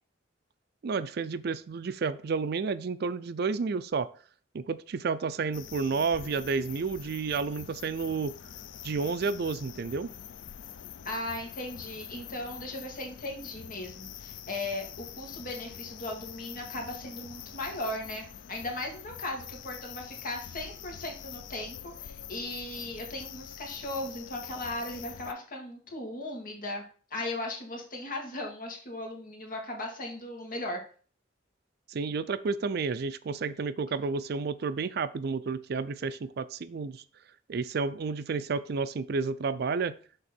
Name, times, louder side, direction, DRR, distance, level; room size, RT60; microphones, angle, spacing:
voice 1, 0.8-4.1 4.5-8.3 8.8-10.1 31.9-37.0 37.5-39.9, right 4 dB, 55° right, 15 dB, 0.4 m, -31 dB
sound 1, 5.5-25.3, left 9 dB, 80° left, 0.4 m, -45 dB
voice 2, 11.0-26.8 27.1-30.8, left 1 dB, 50° left, 1 dB, 2.1 m, -37 dB
6.7 x 3.6 x 6.0 m, 0.41 s
head